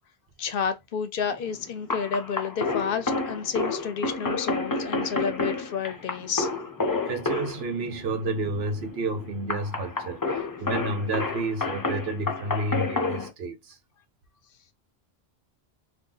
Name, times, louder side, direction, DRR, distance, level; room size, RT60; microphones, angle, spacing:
voice 1, 0.4-6.5, left 6 dB, 65° left, 0.7 m, -30 dB
sound 1, 1.3-13.3, left 3 dB, 30° left, 0.4 m, -30 dB
voice 2, 7.1-13.8, right 2 dB, 75° right, 1.0 m, -30 dB
2.7 x 2.2 x 3.7 m
omnidirectional pair, 1.1 m